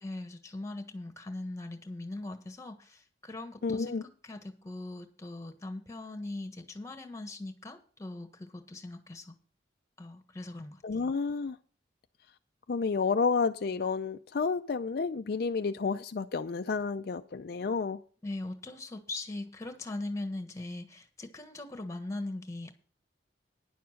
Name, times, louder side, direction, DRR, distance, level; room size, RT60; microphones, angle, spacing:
voice 1, 0.0-9.3 10.0-10.8 18.2-22.7, left 2 dB, 15° left, 1.3 m, -40 dB
voice 2, 3.6-4.0 10.8-11.6 12.7-18.0, left 4 dB, 55° left, 0.4 m, -30 dB
10.0 x 7.0 x 6.4 m
head